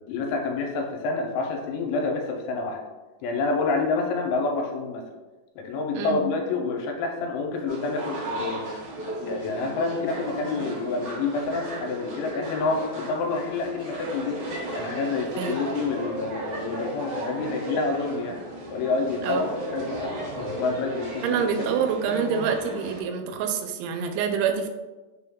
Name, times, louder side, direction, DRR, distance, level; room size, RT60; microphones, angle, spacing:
voice 1, 0.1-2.8 3.2-5.0 5.6-8.7 9.2-14.4 14.7-18.4 18.7-20.1 20.6-21.8, left 3 dB, 85° left, 1 dB, 3.0 m, -28 dB
sound 1, 7.7-23.0, right 1 dB, 70° right, 1.9 m, -35 dB
voice 2, 21.2-24.7, right 7 dB, 85° right, 4 dB, 2.9 m, -26 dB
6.5 x 3.5 x 2.2 m, 1.2 s
omnidirectional pair, 5.3 m